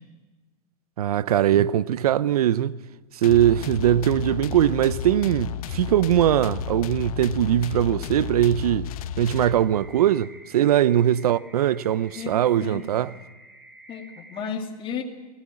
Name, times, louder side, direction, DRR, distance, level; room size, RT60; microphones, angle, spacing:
voice 1, 1.0-2.8 3.1-8.9 9.2-13.1, right 11 dB, 80° right, 0.6 m, -21 dB
sound 1, 3.2-9.9, left 9 dB, 70° left, 1.1 m, -33 dB
sound 2, 9.5-14.5, right 1 dB, 5° right, 5.1 m, -50 dB
voice 2, 12.2-13.1 13.9-15.0, left 7 dB, 30° left, 2.5 m, -34 dB
23.0 x 17.0 x 8.7 m
hypercardioid pair, 115°, 19 cm